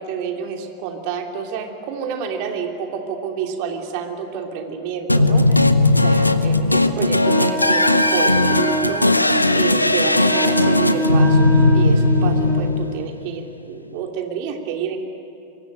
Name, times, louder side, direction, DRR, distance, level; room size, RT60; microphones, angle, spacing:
voice 1, 0.0-5.7 6.0-7.8 8.1-15.0, right 7 dB, 45° right, 4 dB, 3.0 m, -29 dB
sound 1, 5.1-13.3, left 2 dB, 85° left, 1.0 m, -17 dB
Wind instrument woodwind instrument, 7.2-12.7, right 1 dB, 5° right, 4.1 m, -26 dB
25.5 x 22.5 x 9.1 m, 2.6 s
figure-of-eight pair, 90°, 0 cm